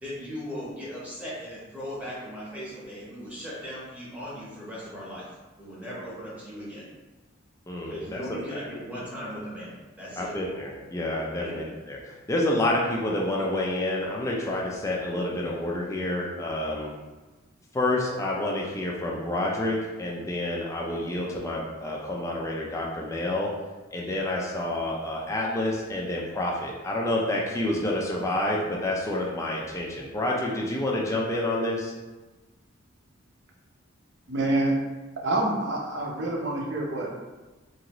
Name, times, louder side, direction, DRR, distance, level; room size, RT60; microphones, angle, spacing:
voice 1, 0.0-5.3 5.6-6.8 7.9-10.3 11.4-11.6, equal, 5° right, -8 dB, 0.8 m, -38 dB
voice 2, 7.7-8.2 8.5-8.6 10.2-17.0 17.7-23.5 23.9-31.9, left 1 dB, 15° left, -3 dB, 0.3 m, -28 dB
voice 3, 34.3-34.8 35.2-37.1, right 2 dB, 55° right, -2 dB, 0.6 m, -26 dB
2.8 x 2.6 x 2.9 m, 1.2 s
head